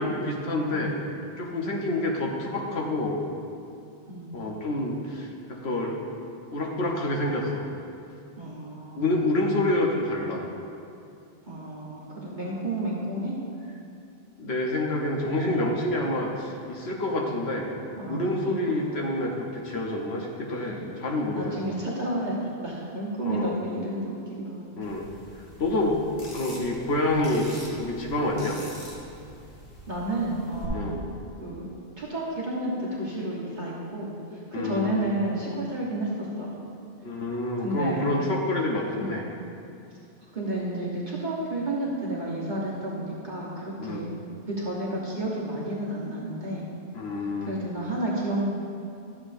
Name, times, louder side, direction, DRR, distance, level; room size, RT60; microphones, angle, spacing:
voice 1, 0.0-1.0 1.4-3.2 4.3-6.0 6.5-7.7 8.9-10.4 14.4-17.7 18.1-21.5 23.2-23.6 24.8-25.1 25.6-26.0 26.3-27.5 27.7-28.6 30.7-31.0 34.5-35.0 37.0-39.2 43.8-44.0 46.9-47.6, left 1 dB, 65° left, -1 dB, 1.2 m, -27 dB
voice 2, 0.7-1.3 4.1-4.4 8.4-9.4 11.4-13.3 18.0-18.9 20.6-20.9 21.3-24.7 29.9-31.0 31.4-31.7 32.0-36.5 37.6-38.1 39.0-39.2 40.3-44.1 44.5-46.7 47.4-48.5, right 1 dB, 45° right, -6 dB, 1.3 m, -31 dB
sound 1, 24.8-30.7, equal, 85° left, 1.8 m, -45 dB
12.0 x 7.4 x 2.6 m, 2.6 s
omnidirectional pair, 1.2 m